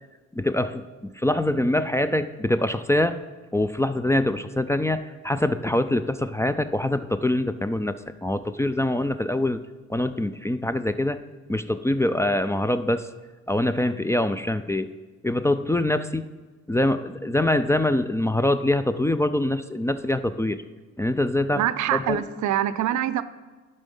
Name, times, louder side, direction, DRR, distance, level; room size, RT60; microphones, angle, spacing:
voice 1, 0.3-3.2 3.5-8.0 8.2-9.6 9.9-11.2 11.5-13.1 13.5-14.9 15.2-16.3 16.7-20.6 21.0-21.7 21.9-22.2, left 1 dB, 10° left, 11 dB, 0.3 m, -24 dB
voice 2, 21.5-23.2, right 12 dB, 75° right, 15 dB, 0.6 m, -24 dB
11.0 x 5.4 x 5.4 m, 1.3 s
cardioid pair, 90°, 30 cm